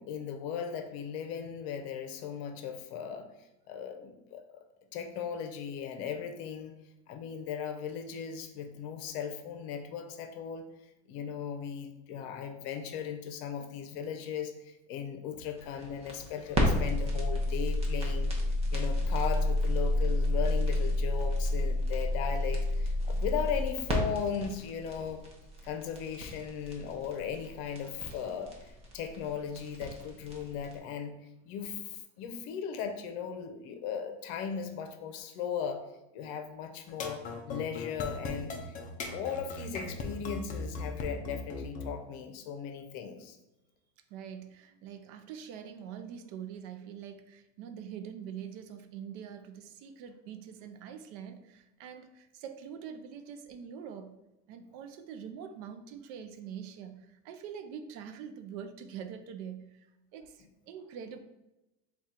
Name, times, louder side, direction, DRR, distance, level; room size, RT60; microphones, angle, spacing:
voice 1, 0.0-3.3 3.7-4.6 4.9-6.7 7.1-10.6 11.1-25.2 25.6-31.2 31.4-35.8 36.1-38.8 39.1-43.4, left 7 dB, 65° left, 7 dB, 0.7 m, -37 dB
sound 1, 15.6-30.7, left 1 dB, 20° right, 0.7 m, -30 dB
sound 2, 36.9-41.9, left 3 dB, 25° left, 0.4 m, -38 dB
voice 2, 44.1-54.1 54.5-59.9 60.1-61.2, right 8 dB, 55° right, 8 dB, 0.5 m, -44 dB
3.6 x 2.4 x 4.2 m, 0.96 s
supercardioid pair, 145°, 34 cm